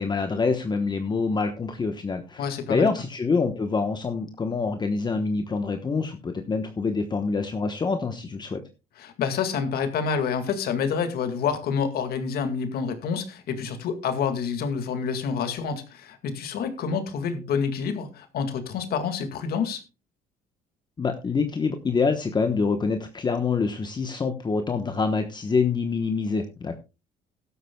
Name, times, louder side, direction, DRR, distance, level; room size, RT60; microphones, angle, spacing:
voice 1, 0.0-8.6 21.0-26.8, left 4 dB, 25° left, 6 dB, 1.1 m, -26 dB
voice 2, 2.4-2.9 9.0-19.8, left 6 dB, 65° left, 8 dB, 2.0 m, -28 dB
16.0 x 12.5 x 2.3 m, 0.28 s
cardioid pair, 110°, 17 cm